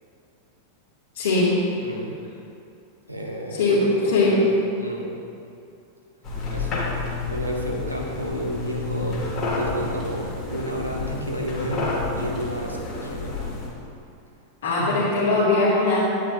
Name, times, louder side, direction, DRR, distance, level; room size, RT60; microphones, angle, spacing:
voice 1, 1.1-1.5 3.5-3.8 4.0-4.4 14.6-16.0, left 3 dB, 60° left, -8 dB, 1.4 m, -20 dB
voice 2, 1.8-2.1 3.1-4.5 4.8-5.1 6.5-6.7 7.3-11.9 12.2-13.4 14.6-15.1, right 1 dB, 85° right, -1 dB, 1.0 m, -31 dB
sound 1, 6.2-13.7, left 3 dB, 25° left, 1.7 m, -30 dB
9.1 x 8.5 x 2.3 m, 2.6 s
figure-of-eight pair, 90°, 0 cm